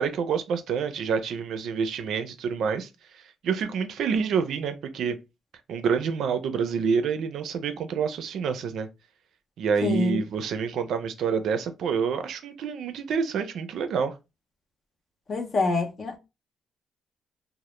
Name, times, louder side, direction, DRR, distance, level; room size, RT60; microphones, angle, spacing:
voice 1, 0.0-5.2 5.7-8.9 9.6-14.1, right 6 dB, 70° right, 0.4 m, -27 dB
voice 2, 9.8-10.2 15.3-16.2, left 3 dB, 45° left, 0.6 m, -26 dB
2.0 x 2.0 x 2.9 m
cardioid pair, 90°, 0 cm